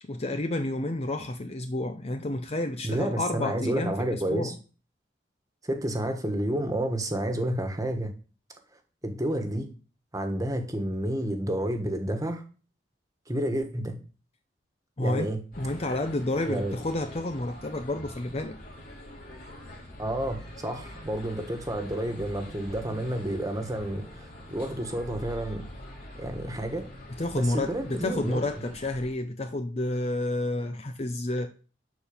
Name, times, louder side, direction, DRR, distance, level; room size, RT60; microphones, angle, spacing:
voice 1, 0.0-4.6 15.0-15.3 15.6-18.6 27.2-31.5, left 2 dB, 35° left, 0.7 m, -30 dB
voice 2, 2.8-4.5 5.6-8.1 9.0-9.7 10.1-12.4 13.3-14.0 15.0-15.4 16.5-16.8 20.0-25.6 26.2-26.9 27.3-28.4, right 1 dB, 20° right, 1.5 m, -30 dB
sound 1, 15.5-29.1, left 1 dB, 50° left, 4.0 m, -44 dB
12.0 x 4.5 x 7.1 m
head